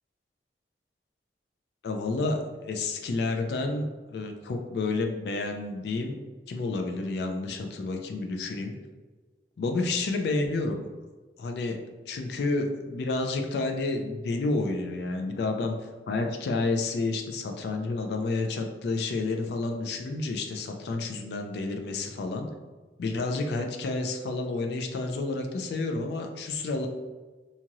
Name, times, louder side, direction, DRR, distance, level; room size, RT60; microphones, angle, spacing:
voice 1, 1.8-6.2 6.5-8.8 9.6-10.9 11.4-11.8 12.1-15.7 16.1-22.5 23.0-26.9, left 3 dB, 70° left, 4 dB, 0.3 m, -30 dB
2.8 x 2.4 x 2.9 m, 1.3 s
head